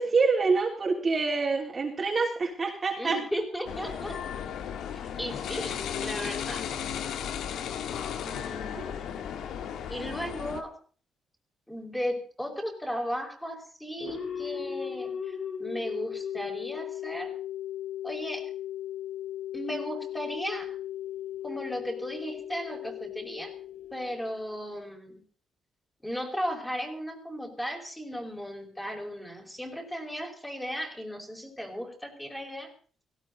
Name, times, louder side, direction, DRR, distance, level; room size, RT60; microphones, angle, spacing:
voice 1, 0.0-3.2 8.7-8.9, right 4 dB, 30° right, -1 dB, 3.3 m, -26 dB
voice 2, 3.0-4.2 4.9-6.6 8.2-9.6 9.9-10.7 11.7-17.3 18.0-18.4 19.5-20.7 21.4-23.5 23.9-25.2 26.0-32.7, equal, 5° left, 1 dB, 5.3 m, -36 dB
sound 1, 3.7-10.6, left 8 dB, 80° left, 1.8 m, -35 dB
sound 2, 14.0-24.7, left 9 dB, 50° left, 4.5 m, -37 dB
18.0 x 17.0 x 4.1 m, 0.43 s
cardioid pair, 135°, 0 cm